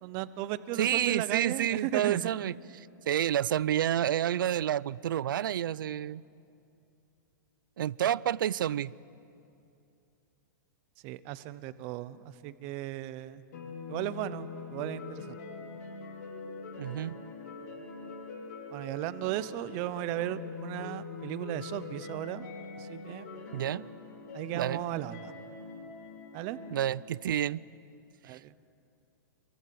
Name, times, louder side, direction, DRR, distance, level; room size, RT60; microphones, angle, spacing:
voice 1, 0.0-2.3 11.0-13.4 13.9-15.4 18.7-22.5 22.8-23.2 24.3-25.3 26.3-26.6 28.2-28.7, right 14 dB, 25° right, 0.6 m, -36 dB
voice 2, 0.8-6.2 7.8-8.9 16.8-17.2 23.5-23.8 24.5-24.8 26.7-27.6 28.3-28.4, right 11 dB, 85° right, 0.5 m, -29 dB
sound 1, 13.5-26.8, left 4 dB, 55° left, 4.7 m, -43 dB
27.0 x 23.0 x 7.7 m
supercardioid pair, 175°, 11 cm